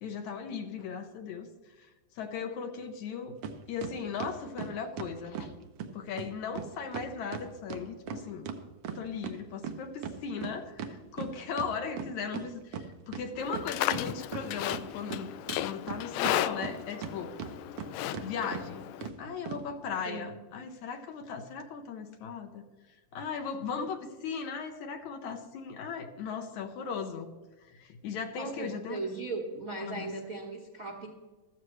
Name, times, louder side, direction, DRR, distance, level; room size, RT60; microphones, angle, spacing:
voice 1, 0.0-1.5 1.8-3.4 3.7-5.5 5.9-8.5 8.9-15.3 15.6-17.3 18.2-18.9 19.2-22.6 23.1-27.3 27.7-29.0 29.8-30.1, left 6 dB, 70° left, 6 dB, 2.2 m, -38 dB
sound 1, 3.4-3.5 3.8-5.5 5.8-5.9 6.2-6.3 6.5-6.7 6.9-9.4 9.6-12.4 12.7-12.8 13.1-14.0 14.3-15.2 15.5-17.1 17.4-17.9 18.1-18.3 18.5-18.6 19.0-19.1 19.5-19.6, right 7 dB, 70° right, 1.3 m, -37 dB
Livestock farm animals working animals, 13.4-19.1, left 13 dB, 90° left, 1.6 m, -34 dB
voice 2, 28.4-31.1, right 3 dB, 45° right, 1 dB, 1.0 m, -38 dB
14.5 x 14.0 x 3.2 m, 1.3 s
omnidirectional pair, 3.8 m